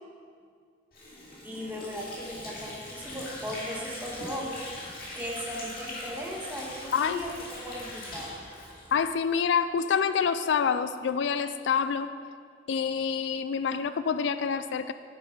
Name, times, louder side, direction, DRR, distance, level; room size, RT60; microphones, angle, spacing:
Water / Sink (filling or washing), 0.9-9.5, left 1 dB, 50° left, 2.5 m, -41 dB
voice 1, 1.4-4.6 5.1-8.8, equal, 10° right, -4 dB, 1.6 m, -37 dB
voice 2, 6.9-7.3 8.9-12.1 12.7-14.9, left 6 dB, 70° left, 12 dB, 0.4 m, -27 dB
9.4 x 8.5 x 5.2 m, 2.3 s
head